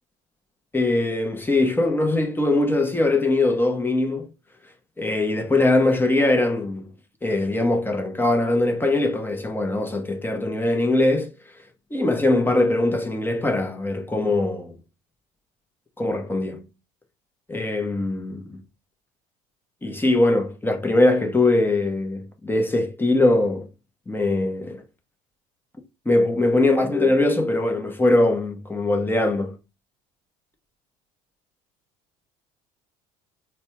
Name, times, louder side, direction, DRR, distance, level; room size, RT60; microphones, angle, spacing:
voice 1, 0.7-4.3 5.0-6.9 7.2-11.3 11.9-14.8 16.0-16.6 17.5-18.6 19.8-23.7 24.1-24.8 26.0-29.6, left 2 dB, 10° left, 0.9 m, -21 dB
4.2 x 2.2 x 2.9 m
hypercardioid pair, 75°, 18 cm